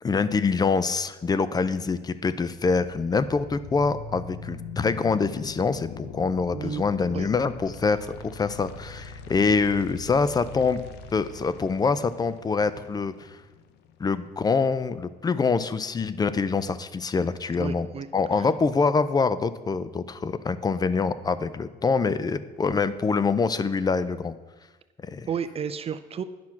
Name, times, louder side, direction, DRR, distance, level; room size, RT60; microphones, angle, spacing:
voice 1, 0.0-10.8 11.1-13.4 14.0-17.9 18.1-24.3 25.0-25.3, left 4 dB, 25° left, 14 dB, 0.5 m, -25 dB
sound 1, 2.5-14.5, left 5 dB, 85° left, 0.8 m, -42 dB
voice 2, 6.5-6.8 7.1-7.3 17.6-18.1 18.4-18.5 25.3-26.2, right 7 dB, 35° right, 12 dB, 0.4 m, -32 dB
9.9 x 6.0 x 5.8 m, 1.2 s
cardioid pair, 110°, 17 cm